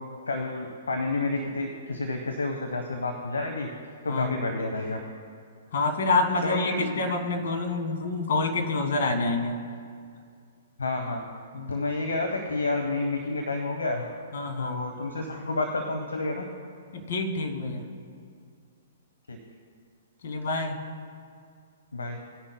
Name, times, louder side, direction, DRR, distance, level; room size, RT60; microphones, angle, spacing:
voice 1, 0.3-3.7 4.0-5.0 6.4-7.0 10.8-11.2 11.7-14.0 14.6-16.5 19.3-19.4 21.9-22.2, left 2 dB, 80° left, 3 dB, 1.1 m, -29 dB
voice 2, 5.7-9.5 11.5-11.8 14.3-14.8 16.9-17.8 20.2-20.8, left 3 dB, 60° left, 3 dB, 1.9 m, -27 dB
18.5 x 10.5 x 2.2 m, 2.2 s
figure-of-eight pair, 120°, 0 cm